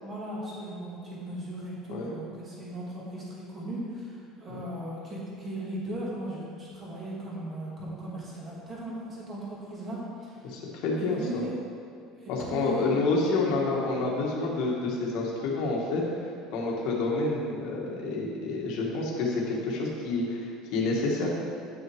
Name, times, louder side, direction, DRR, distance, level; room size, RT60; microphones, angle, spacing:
voice 1, 0.0-10.6 11.0-11.5 12.2-12.9, right 1 dB, 20° right, -5 dB, 2.0 m, -37 dB
voice 2, 10.4-11.4 12.3-16.0 16.5-21.4, left 3 dB, 60° left, -2 dB, 1.5 m, -28 dB
8.6 x 6.2 x 4.7 m, 2.5 s
cardioid pair, 175°, 0 cm